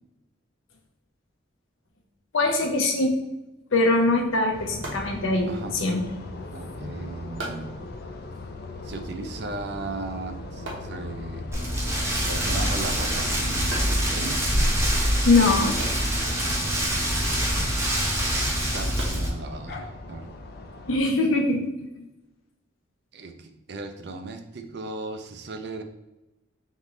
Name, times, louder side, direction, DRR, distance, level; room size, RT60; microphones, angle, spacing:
voice 1, 2.3-3.1 3.7-6.0 15.3-15.8 17.3-17.4 20.9-21.7 22.0-22.1, left 2 dB, 90° left, 3 dB, 0.8 m, -22 dB
sound 1, 4.1-20.0, right 1 dB, 75° right, 1.2 m, -44 dB
sound 2, 4.5-21.0, left 2 dB, 50° left, 0.5 m, -39 dB
voice 2, 6.5-7.7 8.8-11.5 12.2-14.6 16.4-16.7 17.1-17.6 18.7-20.3 23.1-25.8, right 3 dB, 55° right, 6 dB, 0.5 m, -37 dB
Rain, 11.5-19.3, equal, 15° right, 0.8 m, -25 dB
3.6 x 3.1 x 3.7 m, 0.98 s
head